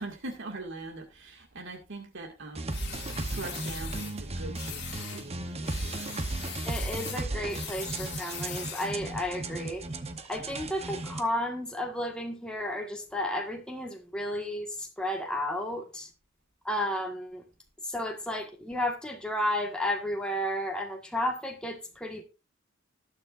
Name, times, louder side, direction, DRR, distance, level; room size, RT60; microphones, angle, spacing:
voice 1, 0.0-2.8 3.3-6.2 10.6-10.7, right 2 dB, 65° right, 2.2 m, -42 dB
sound 1, 2.5-11.2, right 2 dB, 30° right, 0.9 m, -35 dB
sound 2, 2.7-4.2 4.5-5.3 5.6-9.0, left 8 dB, 60° left, 2.4 m, -41 dB
voice 2, 6.6-9.8 10.3-16.1 16.6-17.4 17.9-22.2, left 1 dB, 5° left, 1.6 m, -32 dB
19.0 x 6.4 x 2.6 m
head